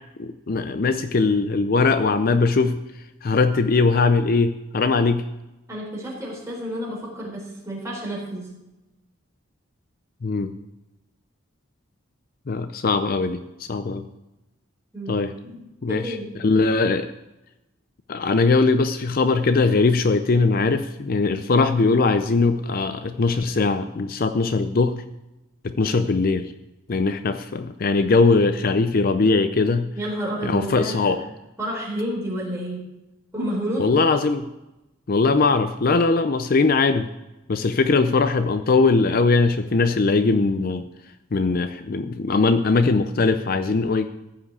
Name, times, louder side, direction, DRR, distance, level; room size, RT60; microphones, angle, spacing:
voice 1, 0.2-5.2 10.2-10.6 12.5-14.1 15.1-15.3 15.8-17.1 18.1-25.0 25.6-26.5 26.9-29.9 30.4-31.2 33.8-34.5 35.1-37.1 37.5-40.8 41.3-44.1, left 3 dB, 45° left, 9 dB, 0.5 m, -20 dB
voice 2, 5.7-8.5 14.9-15.6 15.9-16.3 30.0-31.1 31.6-32.8 33.3-33.9, right 1 dB, 15° right, -3 dB, 4.0 m, -30 dB
14.5 x 5.7 x 8.3 m, 0.96 s
head